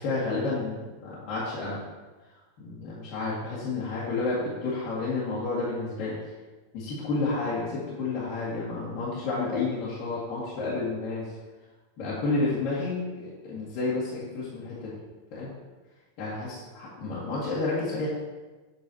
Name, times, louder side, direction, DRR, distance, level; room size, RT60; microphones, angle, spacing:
voice 1, 0.0-1.8 2.6-6.2 6.7-11.3 12.0-15.0 15.3-15.5 16.2-18.1, left 3 dB, 40° left, -8 dB, 2.0 m, -30 dB
8.5 x 6.1 x 3.0 m, 1.2 s
figure-of-eight pair, 90°, 0 cm